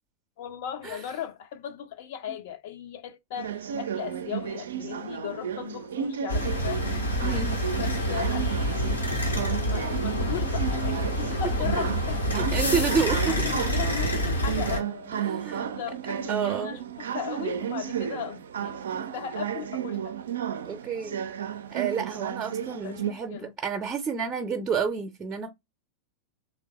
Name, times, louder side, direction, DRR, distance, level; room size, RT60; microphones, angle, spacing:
voice 1, 0.4-6.9 7.8-8.5 9.3-12.5 13.3-15.1 15.6-20.2 22.8-23.5, left 9 dB, 55° left, 0.6 m, -37 dB
sound 1, 3.4-23.1, right 8 dB, 65° right, 0.4 m, -33 dB
sound 2, 6.3-14.8, equal, 85° left, 1.3 m, -27 dB
voice 2, 7.2-7.6 11.8-11.9 12.3-13.4 15.1-15.7 16.3-16.8 20.7-21.2 21.7-25.5, right 6 dB, 25° right, 0.6 m, -30 dB
3.2 x 2.4 x 3.3 m
figure-of-eight pair, 90°, 0 cm